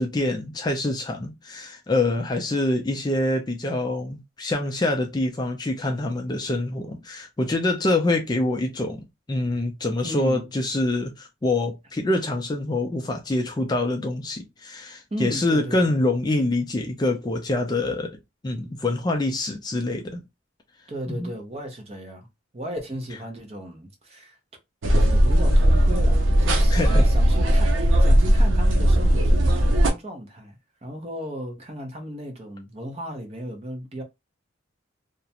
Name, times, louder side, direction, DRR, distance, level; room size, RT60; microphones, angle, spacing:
voice 1, 0.0-18.2 18.4-20.2 21.1-21.3 26.7-27.0, left 2 dB, 20° left, 0.3 m, -25 dB
voice 2, 10.0-10.5 15.1-16.0 20.9-22.3 22.5-24.4 25.0-30.5 30.8-34.0, equal, 30° right, 0.6 m, -35 dB
sound 1, 24.8-29.9, equal, 80° right, 0.5 m, -18 dB
2.4 x 2.1 x 2.7 m
head